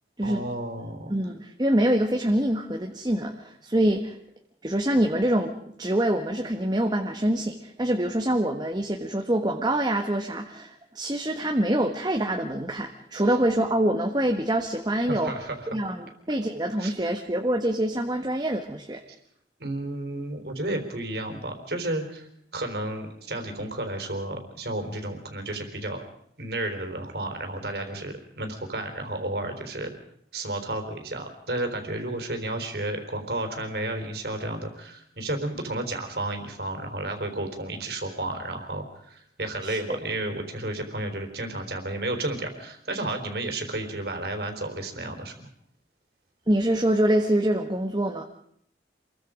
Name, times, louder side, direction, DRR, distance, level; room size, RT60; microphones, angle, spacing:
voice 1, 0.2-1.3 15.1-15.7 16.8-17.2 19.6-26.0 26.4-29.9 30.3-45.3, right 1 dB, 60° right, 5 dB, 4.1 m, -32 dB
voice 2, 1.1-4.2 4.6-15.3 15.7-19.0 39.6-39.8 46.5-48.2, right 1 dB, 25° right, 3 dB, 1.5 m, -25 dB
27.5 x 22.5 x 5.2 m, 0.67 s
head